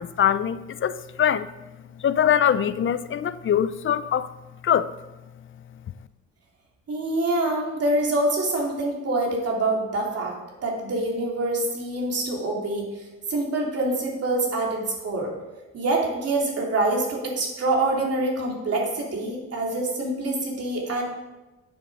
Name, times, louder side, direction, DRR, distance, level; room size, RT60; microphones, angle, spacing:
voice 1, 0.0-1.5 2.0-4.3 4.6-4.9, left 9 dB, 40° left, 14 dB, 0.5 m, -23 dB
voice 2, 6.9-10.3 10.6-13.0 13.3-15.3 15.7-21.0, right 2 dB, 55° right, -1 dB, 3.1 m, -25 dB
9.4 x 7.3 x 4.9 m, 1.1 s
cardioid pair, 90°, 30 cm